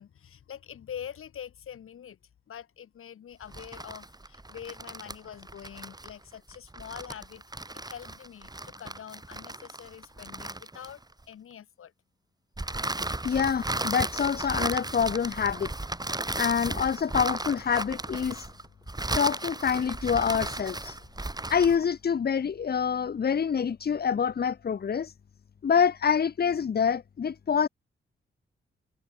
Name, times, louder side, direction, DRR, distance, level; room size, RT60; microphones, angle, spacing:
voice 1, 0.0-2.2 2.5-7.4 7.8-11.0 11.3-11.9 21.0-21.1, left 9 dB, 80° left, 6.4 m, -44 dB
sound 1, 3.4-11.2 12.6-21.9, right 2 dB, 20° right, 7.1 m, -35 dB
voice 2, 13.2-15.7 16.4-18.5 19.1-21.0 21.5-25.1 25.6-27.7, left 7 dB, 50° left, 0.9 m, -26 dB
cardioid pair, 70°, 21 cm